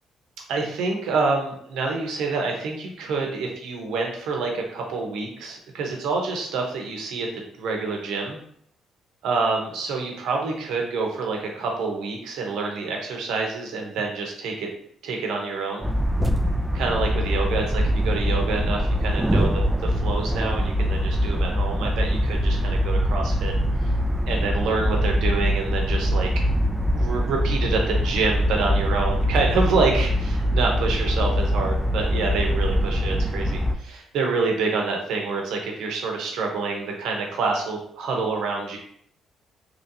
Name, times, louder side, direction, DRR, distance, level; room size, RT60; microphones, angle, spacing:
voice 1, 0.5-8.4 9.2-14.7 15.0-15.9 16.7-23.5 23.8-23.9 24.3-26.3 26.9-38.8, right 4 dB, 85° right, 1 dB, 0.7 m, -27 dB
sound 1, 15.8-33.8, equal, 10° right, 0.3 m, -23 dB
3.0 x 2.6 x 2.8 m, 0.66 s
cardioid pair, 90°, 0 cm